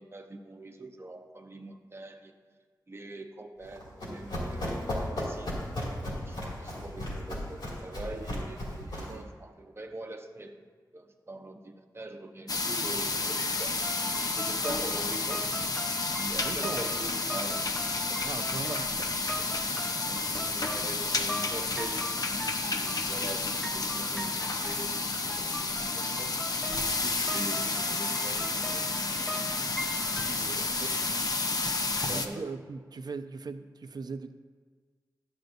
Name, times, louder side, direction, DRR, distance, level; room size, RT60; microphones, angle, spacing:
voice 1, 0.0-2.3 2.9-5.6 6.0-10.5 10.9-13.8 14.1-15.5 16.1-18.6 19.4-19.5 20.1-24.9 25.4-26.4 26.7-29.4 30.2-30.9 32.1-32.4, right 2 dB, 35° right, 5 dB, 0.8 m, -43 dB
Run, 3.6-9.2, left 1 dB, 90° left, 2.4 m, -35 dB
sound 1, 12.5-32.3, left 3 dB, 55° left, 0.7 m, -31 dB
sound 2, 13.8-30.3, equal, 5° left, 0.5 m, -42 dB
voice 2, 16.4-16.8 18.2-19.1 30.3-30.9 32.1-34.3, right 4 dB, 65° right, 9 dB, 0.5 m, -39 dB
12.5 x 7.8 x 2.6 m, 1.5 s
cardioid pair, 60°, 7 cm